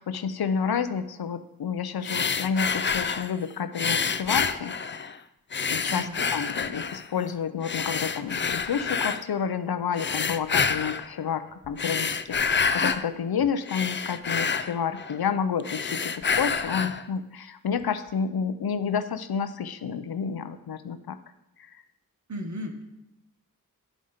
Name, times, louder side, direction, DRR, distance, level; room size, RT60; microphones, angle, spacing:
voice 1, 0.0-5.1 5.7-21.2 21.6-21.7, left 7 dB, 85° left, 11 dB, 0.6 m, -30 dB
sound 1, 2.0-3.3 3.7-5.2 5.5-7.1 7.6-9.2 9.9-11.1 11.6-13.0 13.4-15.3 15.6-17.0, left 5 dB, 30° left, 0.4 m, -28 dB
voice 2, 5.9-6.2 22.3-22.8, equal, 50° right, 3 dB, 1.4 m, -35 dB
10.0 x 5.0 x 5.6 m, 0.92 s
wide cardioid pair, 45°, 36 cm